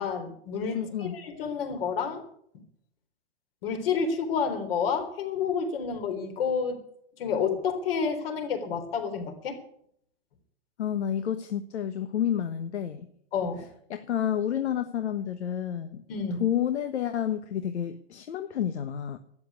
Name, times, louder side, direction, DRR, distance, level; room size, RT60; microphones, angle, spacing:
voice 1, 0.0-2.2 3.6-6.8 7.2-9.6 13.3-13.6 16.1-16.4, left 6 dB, 55° left, 7 dB, 3.6 m, -29 dB
voice 2, 0.7-1.1 10.8-13.1 13.9-16.0 16.4-19.2, left 9 dB, 75° left, 9 dB, 1.3 m, -30 dB
13.0 x 8.7 x 9.6 m, 0.68 s
hypercardioid pair, 145°, 34 cm